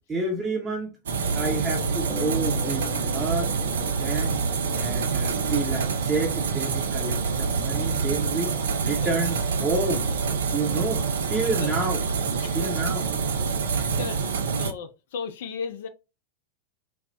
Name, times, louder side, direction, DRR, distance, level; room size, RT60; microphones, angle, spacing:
voice 1, 0.1-0.9 1.3-2.8 3.1-4.4 4.7-8.5 8.8-10.1 10.5-11.0 11.3-12.0 12.5-13.1, right 3 dB, 20° right, 0.7 m, -29 dB
sound 1, 1.1-14.7, right 5 dB, 65° right, 0.4 m, -26 dB
sound 2, 2.1-6.7, left 5 dB, 15° left, 0.6 m, -42 dB
voice 2, 8.9-9.2 11.6-11.8 12.4-12.8 13.8-14.3 14.6-15.9, left 6 dB, 55° left, 0.4 m, -36 dB
3.3 x 2.1 x 2.6 m
figure-of-eight pair, 90°, 0 cm